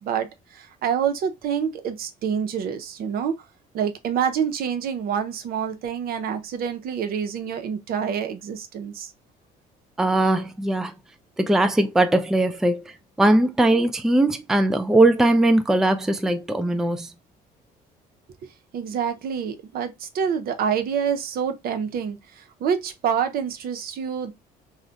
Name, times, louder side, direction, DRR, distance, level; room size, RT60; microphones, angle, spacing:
voice 1, 0.6-3.3 3.7-9.1 18.4-22.2 22.6-24.3, right 7 dB, 60° right, 0.6 m, -27 dB
voice 2, 10.0-10.9 11.4-12.8 13.2-17.1, right 1 dB, 5° right, 0.3 m, -20 dB
2.4 x 2.1 x 3.8 m
cardioid pair, 110°, 17 cm